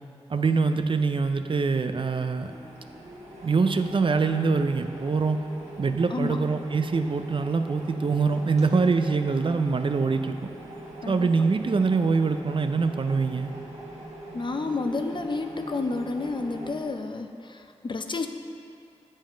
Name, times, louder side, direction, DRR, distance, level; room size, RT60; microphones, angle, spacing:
voice 1, 0.3-2.5 3.4-5.4 5.8-10.4 11.1-13.5, right 4 dB, 50° right, 8 dB, 0.4 m, -24 dB
sound 1, 2.3-16.8, right 1 dB, 85° right, 1.4 m, -42 dB
voice 2, 14.3-18.3, left 3 dB, 45° left, 6 dB, 0.5 m, -30 dB
7.4 x 5.4 x 5.1 m, 2.4 s
cardioid pair, 45°, 11 cm